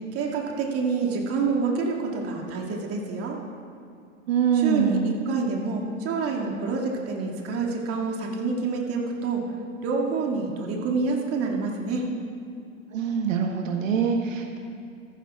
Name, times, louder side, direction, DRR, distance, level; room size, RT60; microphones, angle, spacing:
voice 1, 0.1-3.4 4.5-9.4 9.8-12.0, right 4 dB, 35° right, -1 dB, 2.2 m, -27 dB
voice 2, 4.3-5.1 12.9-14.6, right 6 dB, 75° right, 2 dB, 1.3 m, -24 dB
15.5 x 14.5 x 2.4 m, 2.3 s
hypercardioid pair, 105°, 39 cm